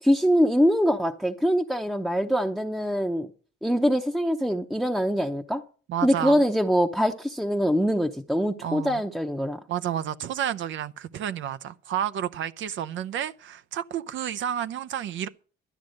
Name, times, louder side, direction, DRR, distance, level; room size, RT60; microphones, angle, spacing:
voice 1, 0.0-3.3 3.6-5.6 6.0-9.6, equal, ahead, 0.7 m, -23 dB
voice 2, 5.9-6.4 8.6-9.0 9.7-15.3, right 10 dB, 70° right, 0.7 m, -31 dB
12.5 x 9.5 x 6.5 m
cardioid pair, 110°, 20 cm